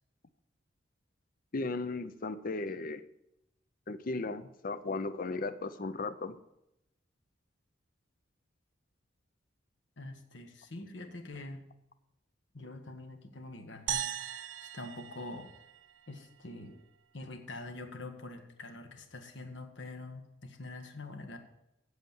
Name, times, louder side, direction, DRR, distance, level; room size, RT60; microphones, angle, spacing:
voice 1, 1.5-3.0 3.9-6.4, left 3 dB, 45° left, 13 dB, 0.6 m, -36 dB
voice 2, 10.0-11.6 12.5-15.5 16.1-16.8 17.1-21.4, left 2 dB, 65° left, 6 dB, 1.4 m, -45 dB
sound 1, 13.9-16.3, right 10 dB, 70° right, 0.5 m, -39 dB
8.0 x 8.0 x 7.3 m, 0.85 s
head